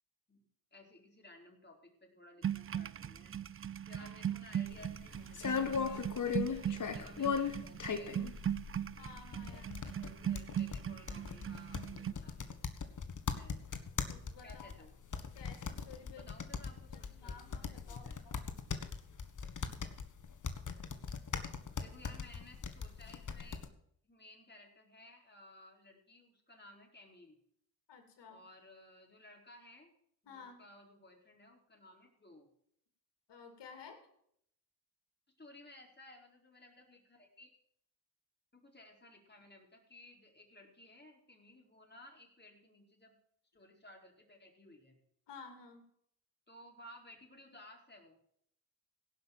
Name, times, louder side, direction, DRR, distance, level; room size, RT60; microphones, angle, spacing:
voice 1, 0.3-3.3 3.9-8.2 9.4-12.6 13.3-13.6 14.4-14.9 16.1-18.2 21.7-23.6 24.0-27.4 28.3-29.9 30.2-32.5 35.4-37.5 38.5-43.2 43.5-45.0 46.5-48.2, left 1 dB, 25° left, 1 dB, 4.7 m, -58 dB
sound 1, 2.4-12.1, right 9 dB, 30° right, 0.5 m, -39 dB
voice 2, 4.0-4.4 9.0-9.6 14.1-14.7 15.3-16.3 16.9-18.4 27.9-28.4 30.3-30.6 33.3-34.1 45.3-45.8, left 5 dB, 75° left, 5 dB, 2.8 m, -53 dB
sound 2, 4.7-23.7, left 6 dB, 45° left, 1.5 m, -39 dB
17.0 x 5.9 x 7.5 m, 0.68 s
supercardioid pair, 50°, 42 cm